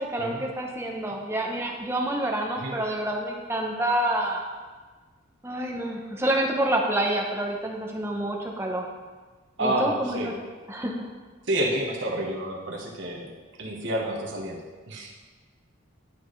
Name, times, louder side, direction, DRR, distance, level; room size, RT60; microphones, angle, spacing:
voice 1, 0.0-4.4 5.4-8.9 9.6-10.3 10.7-10.9, right 1 dB, 10° right, 0 dB, 0.7 m, -28 dB
voice 2, 9.6-10.3 11.5-13.3 13.6-14.6 14.9-15.1, right 1 dB, 60° right, -1 dB, 1.1 m, -29 dB
11.5 x 4.2 x 3.2 m, 1.4 s
head